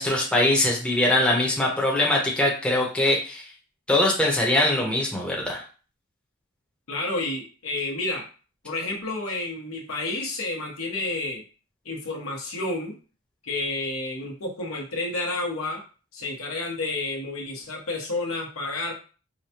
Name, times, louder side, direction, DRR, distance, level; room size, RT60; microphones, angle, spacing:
voice 1, 0.0-3.4 3.9-5.6, left 1 dB, 5° left, -2 dB, 0.8 m, -22 dB
voice 2, 6.9-8.2 8.6-11.4 11.8-12.9 13.4-15.8 16.1-18.9, left 2 dB, 80° left, -1 dB, 1.1 m, -30 dB
4.9 x 2.2 x 2.8 m, 0.37 s
head